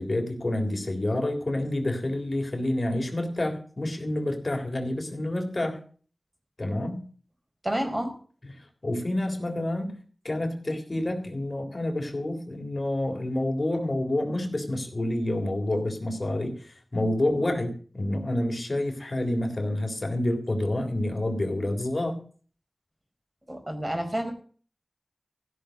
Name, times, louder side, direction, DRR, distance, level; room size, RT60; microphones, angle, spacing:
voice 1, 0.0-5.8 6.6-7.1 8.8-10.0 10.2-22.2, left 1 dB, 50° left, 3 dB, 3.7 m, -28 dB
voice 2, 7.6-8.1 23.5-24.3, right 1 dB, 30° right, 4 dB, 4.5 m, -29 dB
15.5 x 6.6 x 9.4 m, 0.43 s
wide cardioid pair, 60°, 0 cm